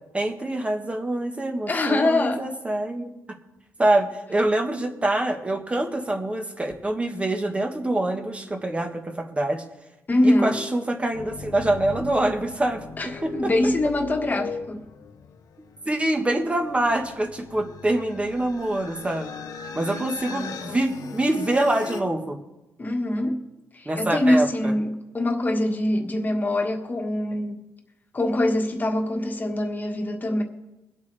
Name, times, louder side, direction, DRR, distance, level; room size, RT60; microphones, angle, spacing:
voice 1, 0.1-3.1 3.8-9.6 10.2-12.9 13.2-13.5 15.8-19.3 19.7-22.4 23.8-24.7, right 1 dB, 20° right, 1.4 m, -25 dB
voice 2, 1.7-2.4 10.1-10.7 13.0-14.8 19.9-20.8 22.8-23.4 23.7-27.6 28.1-30.4, left 1 dB, 30° left, 1.6 m, -24 dB
sound 1, 11.1-22.0, left 5 dB, 75° left, 0.9 m, -39 dB
23.0 x 8.2 x 3.4 m
cardioid pair, 115°, 6 cm